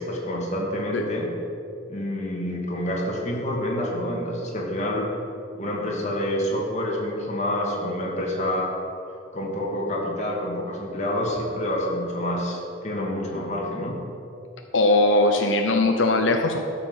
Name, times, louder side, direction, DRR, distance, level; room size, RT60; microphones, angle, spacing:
voice 1, 0.0-1.3 1.9-5.1 5.5-8.8 9.3-14.0, left 1 dB, 40° left, -2 dB, 2.1 m, -28 dB
voice 2, 14.7-16.6, left 2 dB, 85° left, 4 dB, 0.7 m, -20 dB
13.0 x 5.9 x 6.2 m, 2.7 s
head